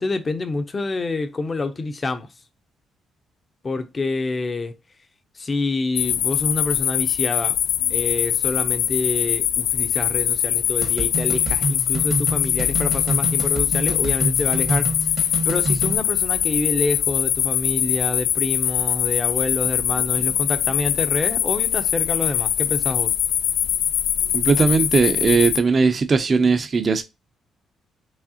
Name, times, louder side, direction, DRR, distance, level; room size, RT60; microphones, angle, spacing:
voice 1, 0.0-2.3 3.6-4.7 5.4-7.6 7.9-14.9 15.4-23.1, left 3 dB, 30° left, 0.6 m, -27 dB
sound 1, 6.0-25.6, left 10 dB, 85° left, 0.3 m, -22 dB
sound 2, 10.8-16.0, right 3 dB, 75° right, 1.6 m, -27 dB
voice 2, 24.3-27.0, right 4 dB, 40° right, 0.6 m, -18 dB
4.8 x 3.5 x 2.8 m
cardioid pair, 90°, 0 cm